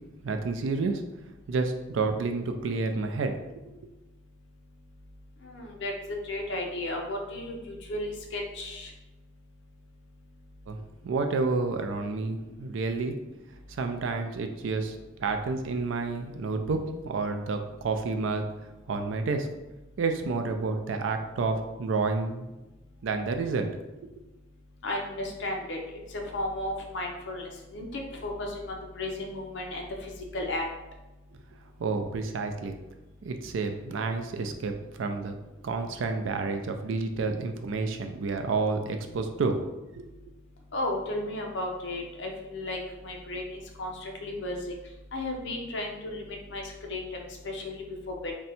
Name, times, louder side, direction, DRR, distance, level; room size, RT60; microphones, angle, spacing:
voice 1, 0.2-1.0 1.5-3.7 10.7-10.8 11.0-13.2 13.7-18.4 18.9-19.5 20.0-22.5 23.0-24.2 31.8-32.8 33.2-35.3 35.6-39.6 40.0-40.1, right 3 dB, 75° right, 6 dB, 0.4 m, -30 dB
voice 2, 5.4-8.9 12.4-12.5 24.8-30.6 40.7-44.7 45.1-48.3, left 1 dB, 65° left, 1 dB, 0.6 m, -34 dB
2.6 x 2.2 x 4.1 m, 1.0 s
head